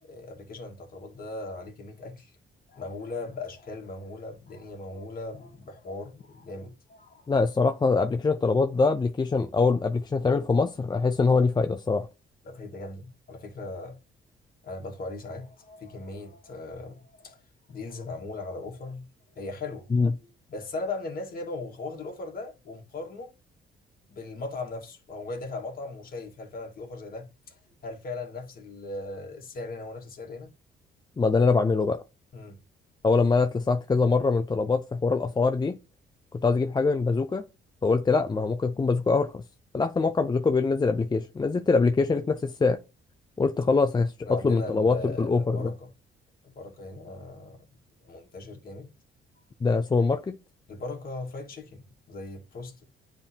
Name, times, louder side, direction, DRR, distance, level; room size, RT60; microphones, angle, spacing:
voice 1, 0.0-2.3 2.7-7.3 12.4-14.0 14.6-17.4 17.7-19.0 19.3-19.9 20.2-23.3 24.1-27.6 27.8-30.5 32.3-32.6 44.2-45.9 46.4-47.6 48.1-48.9 50.7-52.8, left 2 dB, 50° left, 1.7 m, -38 dB
voice 2, 7.3-12.1 19.9-20.1 31.2-32.0 33.0-35.8 36.4-37.4 37.8-39.4 39.7-42.8 43.4-45.7 49.6-50.4, left 4 dB, 20° left, 0.5 m, -23 dB
9.5 x 3.6 x 2.8 m
cardioid pair, 90°, 20 cm